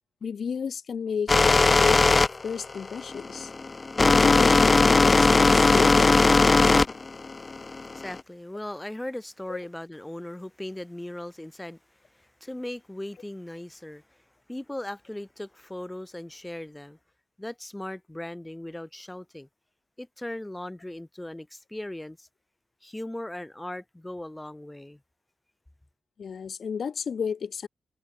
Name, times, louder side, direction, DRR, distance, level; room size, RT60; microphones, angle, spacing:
voice 1, 0.2-2.0 2.4-3.5 4.1-6.3 9.5-9.6 26.2-27.7, left 6 dB, 60° left, 2.7 m, -32 dB
sound 1, 1.3-8.2, left 3 dB, 30° left, 0.4 m, -19 dB
voice 2, 7.9-14.2 14.5-17.0 17.4-19.5 20.0-22.3 22.8-25.0, left 1 dB, 10° left, 3.7 m, -38 dB
wide cardioid pair, 110°, 0 cm